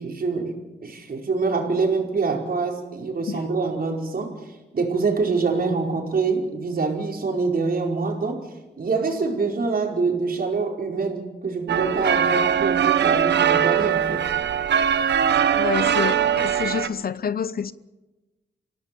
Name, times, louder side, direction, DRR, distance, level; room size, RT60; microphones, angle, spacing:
voice 1, 0.0-4.5 4.7-8.5 8.8-14.3, right 4 dB, 55° right, 5.0 m, -25 dB
sound 1, 11.7-16.9, right 8 dB, 75° right, 1.2 m, -21 dB
voice 2, 15.5-17.7, left 7 dB, 55° left, 0.9 m, -27 dB
27.0 x 17.0 x 7.0 m
cardioid pair, 65°, 18 cm